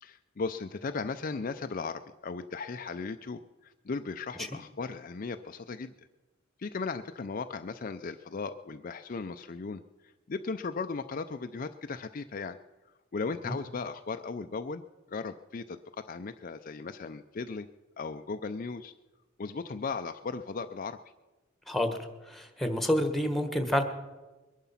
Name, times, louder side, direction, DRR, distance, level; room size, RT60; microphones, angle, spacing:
voice 1, 0.0-5.9 6.6-9.8 10.3-12.6 13.1-14.8 15.1-17.7 18.0-18.9 19.4-21.0, left 4 dB, 40° left, 8 dB, 0.5 m, -37 dB
voice 2, 21.7-22.0 22.3-23.8, left 1 dB, ahead, 7 dB, 1.3 m, -28 dB
22.0 x 11.0 x 5.7 m, 1.2 s
head